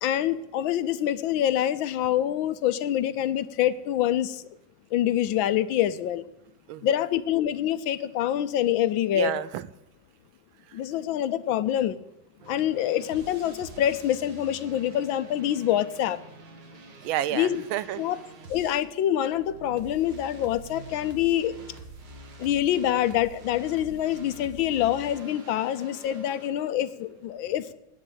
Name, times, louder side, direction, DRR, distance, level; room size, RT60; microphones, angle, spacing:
voice 1, 0.0-4.4 4.9-6.2 6.8-9.3 10.7-12.0 12.5-16.2 17.3-17.6 18.0-18.2 18.5-21.5 22.4-27.6, left 11 dB, 75° left, 13 dB, 1.4 m, -26 dB
voice 2, 9.1-9.7 10.7-10.8 17.0-18.0 22.4-22.5, right 13 dB, 85° right, 16 dB, 1.4 m, -30 dB
sound 1, 12.4-18.8 19.2-26.5, right 3 dB, 60° right, 2.2 m, -47 dB
9.8 x 9.4 x 8.9 m, 0.88 s
omnidirectional pair, 2.2 m